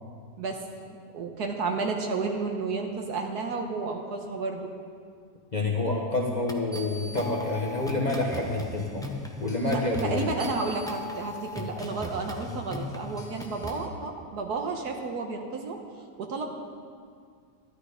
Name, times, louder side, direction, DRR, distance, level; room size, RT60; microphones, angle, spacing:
voice 1, 1.1-4.7 9.6-15.8 16.2-16.5, right 4 dB, 65° right, 3 dB, 1.5 m, -32 dB
voice 2, 5.5-9.1 9.4-10.3, left 2 dB, 30° left, -2 dB, 0.9 m, -28 dB
sound 1, 6.5-13.9, left 2 dB, 5° left, 0.4 m, -38 dB
13.0 x 11.5 x 5.0 m, 2.1 s
omnidirectional pair, 1.9 m